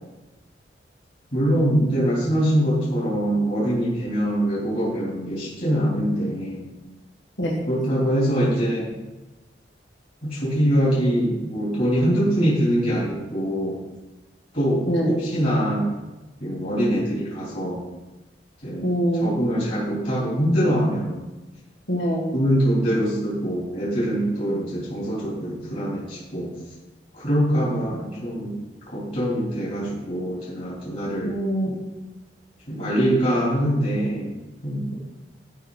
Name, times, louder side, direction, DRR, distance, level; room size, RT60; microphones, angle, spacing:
voice 1, 1.3-6.7 7.7-8.9 10.2-13.8 14.5-14.8 15.2-15.9 16.4-17.8 18.6-21.3 22.3-26.5 27.1-28.5 28.9-31.4 32.7-34.9, equal, 45° left, -8 dB, 3.1 m, -23 dB
voice 2, 18.8-19.3 21.9-22.3 31.2-31.8, equal, 85° left, -1 dB, 1.9 m, -24 dB
13.0 x 5.4 x 4.0 m, 1.1 s
head